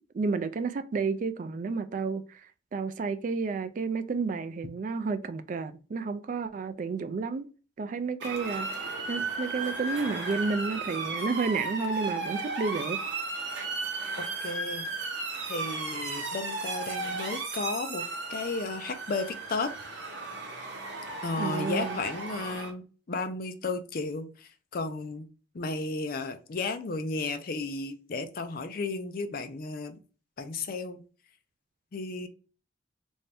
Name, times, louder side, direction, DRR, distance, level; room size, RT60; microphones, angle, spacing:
voice 1, 0.1-2.4 2.7-7.5 7.8-8.7 9.1-13.0 21.4-22.0, right 4 dB, 45° right, 0.3 m, -31 dB
Motor vehicle (road) / Siren, 8.2-22.7, right 3 dB, 70° right, 0.9 m, -35 dB
voice 2, 14.2-14.9 15.5-19.7 21.2-25.3 25.5-30.0 30.4-31.0 31.9-32.3, left 3 dB, 50° left, 0.4 m, -34 dB
3.3 x 2.6 x 3.3 m
head